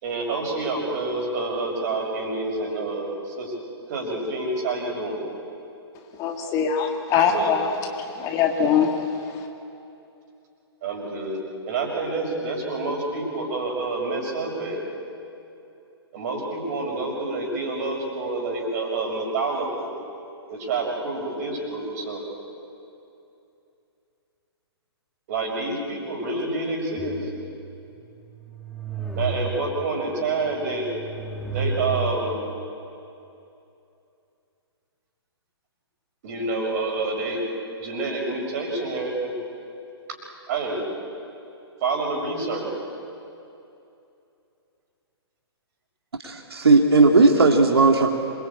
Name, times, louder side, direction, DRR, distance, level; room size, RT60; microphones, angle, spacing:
voice 1, 0.0-3.5 3.9-5.2 7.3-7.5 10.8-11.4 11.7-14.8 16.1-19.9 20.5-22.2 25.3-27.2 29.1-30.9 31.5-32.3 36.2-37.4 37.8-39.3 40.5-40.8 41.8-42.7, right 3 dB, 40° right, 1 dB, 6.0 m, -28 dB
voice 2, 6.2-7.7 8.2-8.9, left 7 dB, 25° left, 3 dB, 2.2 m, -22 dB
sound 1, 27.0-27.8 28.3-29.9 30.5-32.4, right 2 dB, ahead, 2.2 m, -32 dB
voice 3, 46.2-48.1, right 3 dB, 65° right, 3 dB, 2.5 m, -16 dB
27.0 x 23.0 x 8.6 m, 2.7 s
figure-of-eight pair, 125°, 14 cm